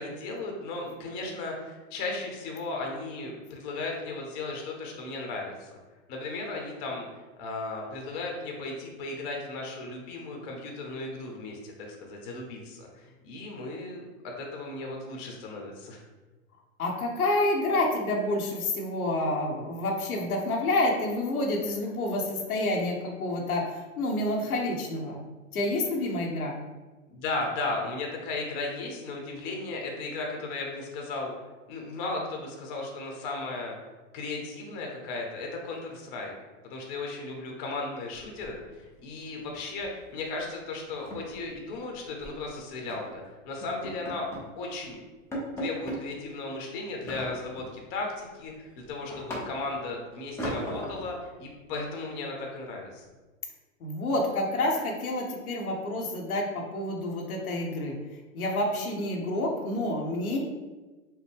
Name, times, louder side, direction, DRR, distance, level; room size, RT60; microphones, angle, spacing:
voice 1, 0.0-5.7 6.1-16.0 27.1-31.3 31.7-33.8 34.1-36.3 36.6-44.3 44.5-45.0 45.6-53.0, left 3 dB, 40° left, 0 dB, 0.9 m, -36 dB
voice 2, 16.8-25.2 25.5-26.6 53.8-58.0 58.3-60.4, left 1 dB, 85° left, 0 dB, 0.9 m, -28 dB
sound 1, 38.1-39.0 39.2-39.5 39.8-40.0 40.3-40.4 40.8-42.4 42.9-43.1 43.6-44.5 44.9-45.0 45.3-46.0 47.1-47.8 48.2-49.8 50.4-51.1, equal, 5° left, 0.5 m, -38 dB
4.4 x 2.1 x 3.4 m, 1.2 s
hypercardioid pair, 125°, 42 cm